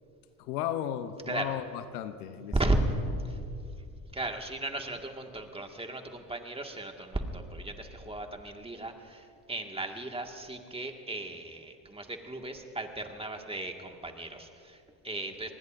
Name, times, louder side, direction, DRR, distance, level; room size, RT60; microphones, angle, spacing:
voice 1, 0.4-2.8, left 11 dB, 85° left, 11 dB, 0.9 m, -35 dB
voice 2, 2.5-2.9 3.2-3.4 4.1-15.5, right 2 dB, 15° right, 3 dB, 1.8 m, -35 dB
27.5 x 20.0 x 2.6 m, 2.5 s
hypercardioid pair, 65°, 44 cm